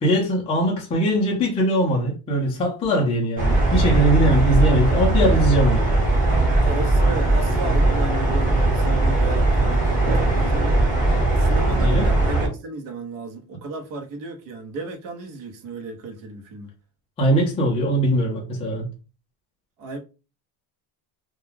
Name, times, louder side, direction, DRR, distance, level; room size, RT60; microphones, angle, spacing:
voice 1, 0.0-5.9 11.8-12.1 17.2-18.9, right 1 dB, 15° left, 0.4 m, -21 dB
sound 1, 3.4-12.5, right 2 dB, 20° right, 1.1 m, -19 dB
voice 2, 6.6-10.8 11.3-16.7 19.8-20.0, right 3 dB, 50° right, 0.8 m, -34 dB
2.3 x 2.2 x 3.2 m
cardioid pair, 160°, 43 cm